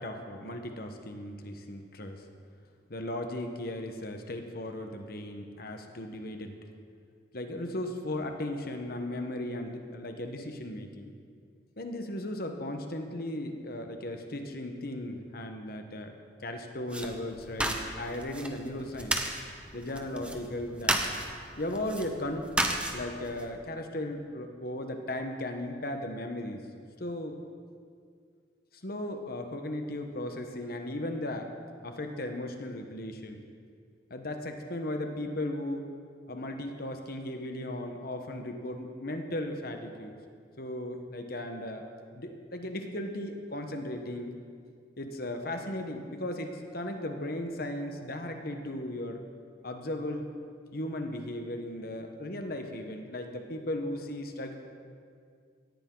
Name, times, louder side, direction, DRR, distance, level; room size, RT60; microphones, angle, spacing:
voice 1, 0.0-2.2 2.9-6.5 7.3-11.1 11.8-16.1 16.4-19.2 19.7-21.0 21.6-22.5 22.9-26.6 27.0-27.4 28.8-31.5 31.8-33.4 34.1-35.9 36.3-40.2 40.6-41.8 42.1-44.3 45.0-49.2 49.6-50.3 50.7-54.6, left 1 dB, 55° left, 5 dB, 1.3 m, -36 dB
sound 1, 16.9-23.4, right 1 dB, 5° right, 1.0 m, -34 dB
17.5 x 14.0 x 4.0 m, 2.2 s
head